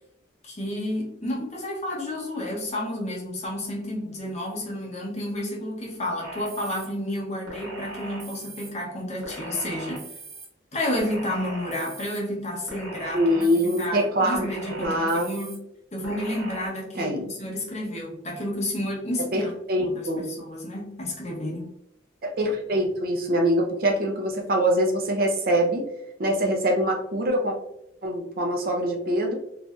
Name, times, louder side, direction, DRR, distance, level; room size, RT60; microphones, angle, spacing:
voice 1, 0.4-10.1 10.7-13.2 13.6-15.6 15.9-19.5 19.8-21.7, left 1 dB, 35° left, -2 dB, 0.7 m, -31 dB
sound 1, 6.2-6.9 7.5-8.7 9.2-10.5 11.0-12.2 12.7-13.9 14.3-15.6 16.0-16.7, right 2 dB, 75° right, 1.1 m, -39 dB
voice 2, 13.1-14.5 14.8-15.3 16.9-17.2 19.3-20.3 22.2-25.9 26.2-27.6 28.0-29.3, equal, 50° right, 1 dB, 0.5 m, -24 dB
3.2 x 2.5 x 2.3 m, 0.79 s
head